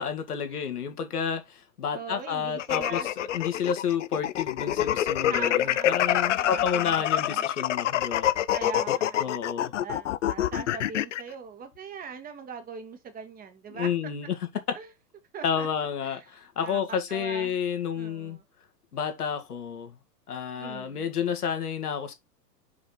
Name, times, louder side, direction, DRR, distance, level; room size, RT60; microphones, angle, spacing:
voice 1, 0.0-8.3 9.2-9.7 13.7-14.5 15.4-18.4 18.9-20.0 20.3-22.1, left 7 dB, 65° left, 2.3 m, -30 dB
voice 2, 1.9-3.1 5.3-7.0 7.2-7.4 8.5-9.4 9.8-13.9 14.7-14.9 15.3-15.7 16.0-16.2 16.6-17.6 18.0-18.4 20.6-21.0, right 6 dB, 15° right, 1.8 m, -41 dB
sound 1, 2.6-11.2, left 12 dB, 50° left, 0.7 m, -26 dB
6.0 x 5.5 x 3.8 m
figure-of-eight pair, 110°, 49 cm